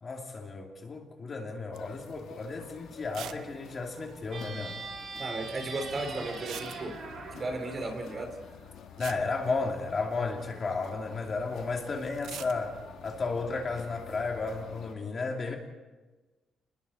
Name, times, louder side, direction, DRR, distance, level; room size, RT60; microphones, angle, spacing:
voice 1, 0.0-4.8 9.0-15.6, left 3 dB, 30° left, 1 dB, 2.6 m, -33 dB
sound 1, 1.7-14.9, left 7 dB, 80° left, 2.8 m, -49 dB
sound 2, 1.8-2.0 2.4-2.5 3.1-3.5 3.7-3.8 4.0-4.1 6.3-7.2 8.6-8.7 9.0-10.2 12.1-12.6, right 10 dB, 80° right, 0.8 m, -43 dB
sound 3, 4.3-8.7, right 4 dB, 50° right, 4.4 m, -42 dB
voice 2, 5.2-7.0 7.4-8.3, right 2 dB, 30° right, 5 dB, 3.0 m, -35 dB
29.5 x 20.5 x 4.2 m, 1.2 s
cardioid pair, 160°, 0 cm